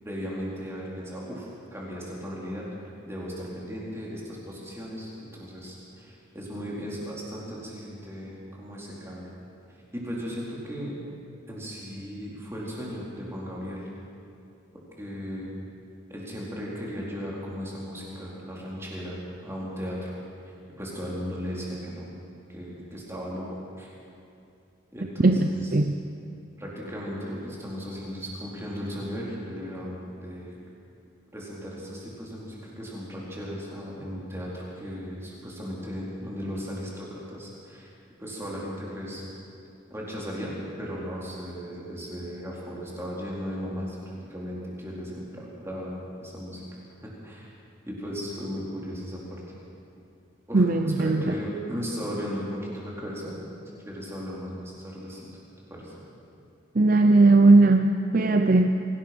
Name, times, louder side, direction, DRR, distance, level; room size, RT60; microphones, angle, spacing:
voice 1, 0.0-2.6 3.1-9.3 9.9-10.9 11.5-13.9 15.0-15.5 16.1-20.1 20.8-22.0 22.5-23.5 23.8-23.9 24.9-25.7 26.6-30.5 31.3-37.9 38.2-39.2 39.9-40.5 40.8-44.0 44.3-46.6 47.0-47.5 47.9-49.4 50.5-53.3 53.8-55.3 55.7-55.9, equal, 15° right, -5 dB, 4.2 m, -36 dB
voice 2, 25.2-25.9 50.5-51.2 56.8-58.7, right 2 dB, 45° right, 6 dB, 0.6 m, -18 dB
24.5 x 17.5 x 6.2 m, 2.5 s
head